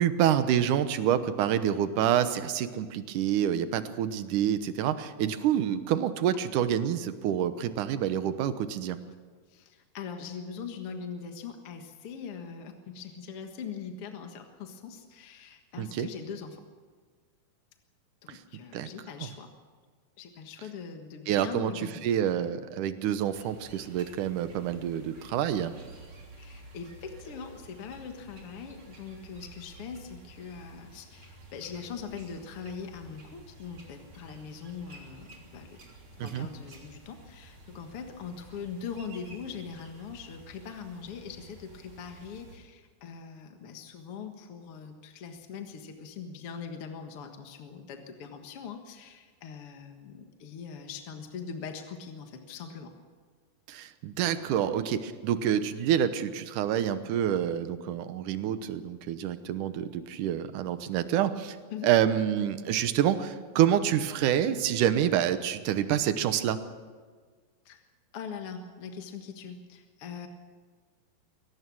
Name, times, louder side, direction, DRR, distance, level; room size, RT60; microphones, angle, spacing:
voice 1, 0.0-9.0 15.8-16.1 18.7-18.9 21.3-21.7 22.0-25.7 36.2-36.5 53.7-61.6 61.8-66.6, right 10 dB, 70° right, 11 dB, 2.2 m, -27 dB
voice 2, 9.5-16.6 18.2-19.5 20.2-22.0 26.4-35.8 36.2-52.9 61.7-61.9 67.7-67.8 68.1-70.3, left 6 dB, 50° left, 5 dB, 1.8 m, -41 dB
sound 1, 23.3-42.6, right 2 dB, 35° right, 3.9 m, -51 dB
23.5 x 18.5 x 6.2 m, 1.5 s
omnidirectional pair, 4.4 m